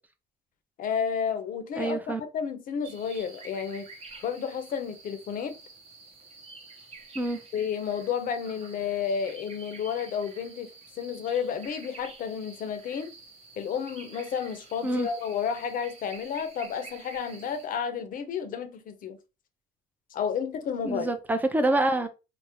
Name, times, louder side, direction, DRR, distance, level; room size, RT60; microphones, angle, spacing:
voice 1, 0.8-3.9 4.2-5.5 7.5-10.7 11.0-13.1 13.6-19.2 20.1-21.1, left 7 dB, 55° left, 0.6 m, -31 dB
voice 2, 1.7-2.2 7.1-7.4 14.8-15.1 20.8-22.1, right 2 dB, 10° right, 0.5 m, -26 dB
sound 1, 2.8-17.7, right 4 dB, 35° right, 0.8 m, -48 dB
3.5 x 2.0 x 2.8 m
cardioid pair, 110°, 17 cm